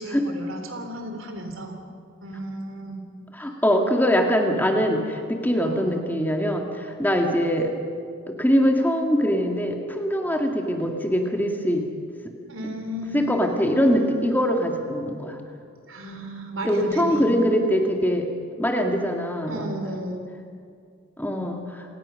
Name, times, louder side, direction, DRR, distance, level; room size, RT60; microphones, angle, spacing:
voice 1, 0.0-1.8 2.2-3.1 5.6-6.0 12.5-14.5 15.9-17.3 19.5-20.3, equal, 70° right, 5 dB, 3.2 m, -34 dB
voice 2, 3.4-7.7 8.3-11.8 13.1-15.4 16.6-18.3 18.6-19.7 21.2-21.8, equal, 10° left, 2 dB, 1.8 m, -23 dB
28.0 x 18.0 x 6.4 m, 2.3 s
head